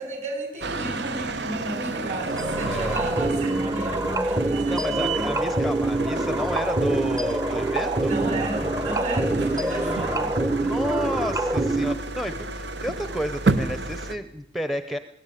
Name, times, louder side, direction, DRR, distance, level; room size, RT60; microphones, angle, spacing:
voice 1, 0.0-5.4 8.1-10.3, right 2 dB, 40° right, 5 dB, 6.3 m, -33 dB
sound 1, 0.6-14.2, right 3 dB, 75° right, 1.2 m, -32 dB
sound 2, 2.3-12.0, right 2 dB, 20° right, 1.0 m, -25 dB
voice 2, 2.7-3.0 4.7-8.2 9.4-10.3 10.6-15.0, equal, ahead, 11 dB, 0.7 m, -31 dB
21.0 x 17.5 x 9.2 m, 0.93 s
head